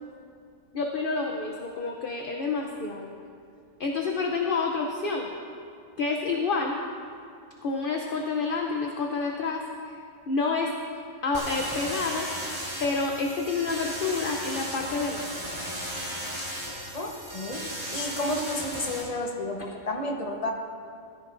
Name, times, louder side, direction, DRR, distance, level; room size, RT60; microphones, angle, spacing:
voice 1, 0.7-3.1 3.8-5.3 6.0-6.8 7.6-9.9 10.3-10.7 11.2-12.3 12.8-15.2, left 4 dB, 45° left, 1 dB, 0.8 m, -28 dB
sound 1, 11.3-19.0, equal, 15° right, 3.1 m, -35 dB
voice 2, 16.9-17.7 17.9-20.5, left 1 dB, 25° left, 1 dB, 1.1 m, -31 dB
17.0 x 14.5 x 2.6 m, 2.4 s
omnidirectional pair, 1.6 m